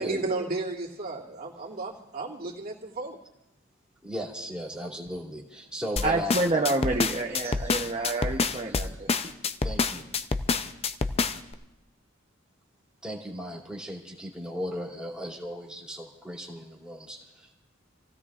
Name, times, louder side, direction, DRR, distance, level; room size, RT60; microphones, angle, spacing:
voice 1, 0.0-3.2, right 3 dB, 50° right, -4 dB, 2.6 m, -33 dB
voice 2, 4.0-6.4 9.6-10.1 13.0-17.5, equal, 5° right, -4 dB, 2.7 m, -36 dB
sound 1, 6.0-11.5, left 4 dB, 30° left, 0.5 m, -27 dB
voice 3, 6.0-9.4, right 2 dB, 30° right, 1 dB, 0.8 m, -28 dB
28.5 x 16.5 x 2.5 m, 0.96 s
head